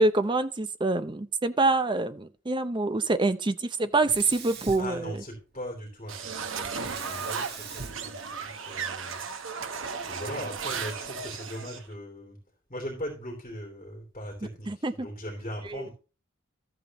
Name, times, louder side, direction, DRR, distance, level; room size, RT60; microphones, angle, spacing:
voice 1, 0.0-5.2 14.7-15.1 15.6-15.9, right 2 dB, 20° right, 0.6 m, -26 dB
Sink (filling or washing), 4.0-5.7 6.8-9.1, right 4 dB, 50° right, 1.5 m, -42 dB
voice 2, 4.8-12.4 12.7-15.9, equal, 30° left, 3.0 m, -40 dB
sound 1, 6.1-11.8, right 5 dB, 70° right, 1.0 m, -35 dB
13.5 x 7.9 x 3.0 m
head